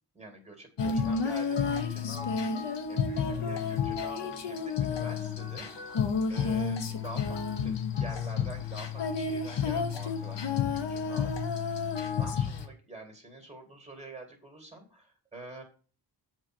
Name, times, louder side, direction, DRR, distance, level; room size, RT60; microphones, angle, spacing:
voice 1, 0.1-2.5 2.9-6.0 6.3-15.6, right 2 dB, 15° right, 0 dB, 2.4 m, -46 dB
Female singing, 0.8-12.7, left 6 dB, 70° left, 1.1 m, -31 dB
7.7 x 4.5 x 6.0 m, 0.39 s
wide cardioid pair, 85°, 44 cm